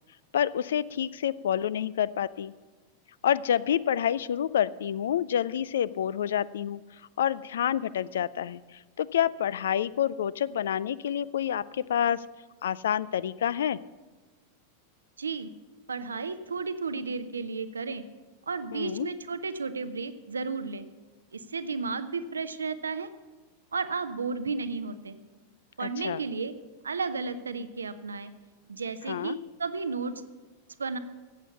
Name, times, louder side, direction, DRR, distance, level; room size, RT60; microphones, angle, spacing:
voice 1, 0.3-2.5 3.2-6.8 7.2-8.6 9.0-12.2 12.6-13.8 18.7-19.1 25.8-26.2 29.1-29.4, left 9 dB, 60° left, 21 dB, 0.3 m, -28 dB
voice 2, 15.2-15.5 15.9-18.0 18.5-20.9 21.3-23.1 23.7-25.2 25.8-26.5 26.8-28.3 28.7-30.1 30.8-31.0, right 4 dB, 75° right, 12 dB, 0.7 m, -33 dB
14.5 x 8.4 x 5.7 m, 1.3 s
figure-of-eight pair, 90°, 0 cm